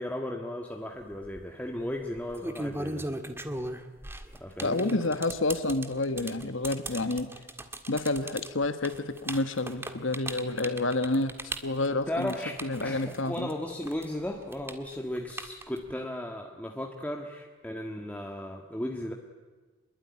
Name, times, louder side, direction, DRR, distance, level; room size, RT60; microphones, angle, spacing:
voice 1, 0.0-3.1 4.4-5.0 12.1-19.1, left 1 dB, 10° left, 1 dB, 1.7 m, -35 dB
sound 1, 1.1-1.4 2.2-13.5 13.8-15.9, right 1 dB, 10° right, 1.6 m, -37 dB
voice 2, 4.6-7.3 7.9-12.3 12.6-13.5, left 2 dB, 75° left, 10 dB, 1.6 m, -29 dB
25.0 x 21.5 x 9.8 m, 1.3 s
head